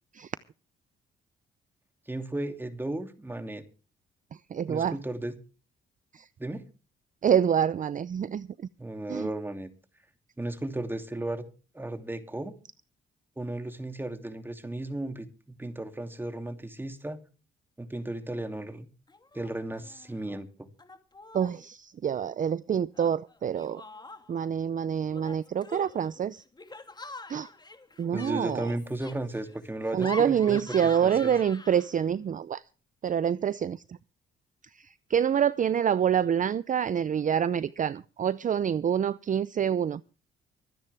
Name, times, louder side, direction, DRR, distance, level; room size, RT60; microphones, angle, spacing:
voice 1, 2.1-3.6 4.7-5.3 6.4-6.6 8.8-9.7 10.4-11.4 11.7-12.5 13.4-17.2 17.8-18.9 19.3-20.5 28.1-30.8 31.0-31.3, right 1 dB, 10° right, 2.8 m, -35 dB
voice 2, 4.5-5.0 6.1-6.2 7.2-8.5 9.1-9.3 21.3-23.8 24.3-26.4 27.3-27.5 28.0-28.7 29.9-32.6 33.0-33.8 34.8-40.0, right 8 dB, 40° right, 0.6 m, -26 dB
Laughter, 19.1-19.5 19.8-20.4 20.8-21.6 22.9-24.5 25.1-32.1, left 3 dB, 20° left, 2.8 m, -45 dB
24.5 x 9.8 x 3.5 m
cardioid pair, 90°, 20 cm